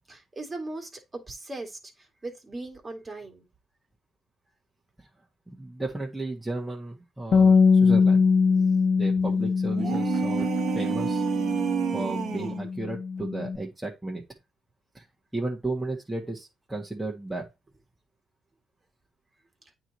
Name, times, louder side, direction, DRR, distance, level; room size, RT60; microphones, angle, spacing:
voice 1, 0.1-1.0 1.3-1.8 2.2-3.4 9.3-9.4 10.4-10.5, right 2 dB, 25° right, 2.1 m, -38 dB
voice 2, 5.5-8.3 8.7-10.5 10.7-11.2 11.9-14.2 14.9-15.0 15.3-17.4, right 2 dB, 10° right, 1.5 m, -34 dB
Bass guitar, 7.3-13.6, left 5 dB, 50° left, 0.4 m, -23 dB
sound 1, 9.7-12.7, right 8 dB, 60° right, 1.0 m, -29 dB
8.8 x 3.1 x 4.1 m
cardioid pair, 90°, 0 cm